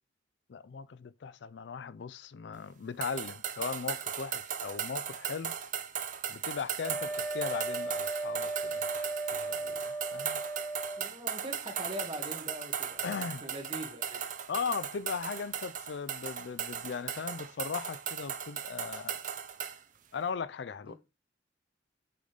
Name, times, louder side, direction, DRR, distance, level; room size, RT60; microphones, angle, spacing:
voice 1, 0.5-5.5 6.3-10.4 13.0-13.4 14.5-19.3 20.1-20.9, left 5 dB, 70° left, 0.4 m, -38 dB
sound 1, 3.0-19.8, right 8 dB, 45° right, 0.6 m, -37 dB
Wind instrument woodwind instrument, 6.8-11.1, right 3 dB, 5° left, 1.0 m, -36 dB
voice 2, 11.0-14.2 20.9-21.0, right 1 dB, 30° right, 1.7 m, -42 dB
8.4 x 4.0 x 3.3 m
head